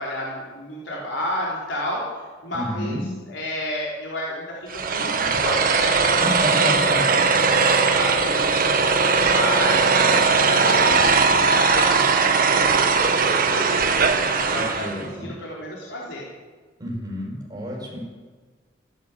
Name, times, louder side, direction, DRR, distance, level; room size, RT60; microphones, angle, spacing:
voice 1, 0.0-6.0 6.5-7.4 7.9-13.9 14.3-16.3, left 1 dB, 75° left, -5 dB, 3.7 m, -31 dB
voice 2, 2.5-3.1 6.2-7.2 14.5-15.3 16.8-18.0, equal, 20° right, -2 dB, 5.6 m, -29 dB
sound 1, 4.7-15.0, right 4 dB, 50° right, 1.3 m, -19 dB
15.0 x 12.0 x 8.1 m, 1.4 s
head